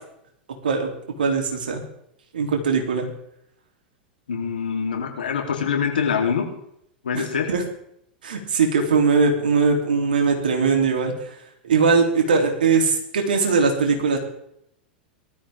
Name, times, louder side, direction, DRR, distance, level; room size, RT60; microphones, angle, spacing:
voice 1, 1.2-1.8 2.3-3.1 7.1-7.6 8.2-11.1 11.6-14.2, right 4 dB, 70° right, 3 dB, 3.4 m, -20 dB
voice 2, 4.3-6.5 7.0-7.5, left 6 dB, 70° left, 2 dB, 3.5 m, -24 dB
19.0 x 13.5 x 3.7 m, 0.73 s
figure-of-eight pair, 90°, 5 cm